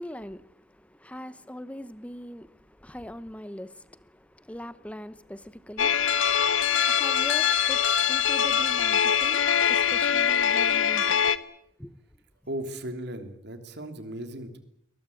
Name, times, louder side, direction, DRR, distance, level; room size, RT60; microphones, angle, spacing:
voice 1, 0.0-11.3 11.8-12.0, equal, 5° left, 0.9 m, -42 dB
sound 1, 5.8-11.4, left 8 dB, 70° left, 1.0 m, -23 dB
voice 2, 12.5-14.6, right 1 dB, 55° right, 3.0 m, -36 dB
22.5 x 20.5 x 8.5 m
head